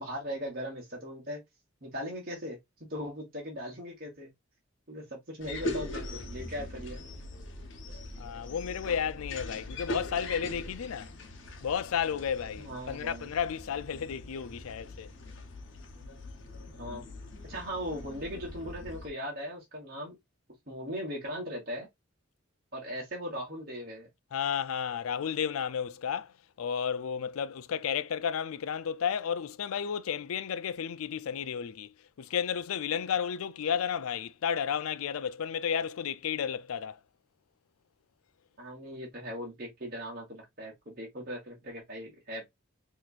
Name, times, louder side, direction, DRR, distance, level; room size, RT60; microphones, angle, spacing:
voice 1, 0.0-1.4 1.8-4.3 4.9-7.0 12.6-13.3 16.7-17.0 17.5-20.2 20.7-21.9 22.7-24.1 38.6-42.5, equal, 45° right, 1.3 m, -39 dB
sound 1, 5.4-19.1, left 2 dB, 60° left, 0.9 m, -41 dB
voice 2, 8.2-11.1 11.6-15.1 24.3-37.0, left 7 dB, 90° left, 0.4 m, -32 dB
4.1 x 2.9 x 2.4 m
head